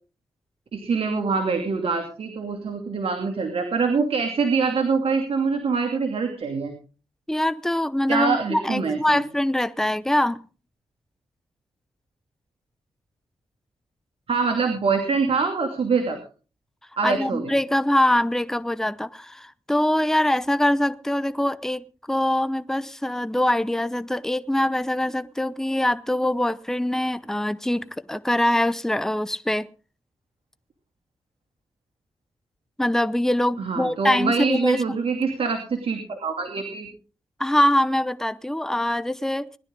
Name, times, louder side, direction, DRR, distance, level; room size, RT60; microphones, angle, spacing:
voice 1, 0.7-6.7 8.1-9.2 14.3-16.2 17.0-17.6 33.6-36.9, right 4 dB, 65° right, 2.6 m, -24 dB
voice 2, 7.3-10.4 17.0-29.7 32.8-35.0 37.4-39.5, left 1 dB, 5° left, 0.7 m, -23 dB
20.5 x 11.5 x 3.7 m
cardioid pair, 55°, 11 cm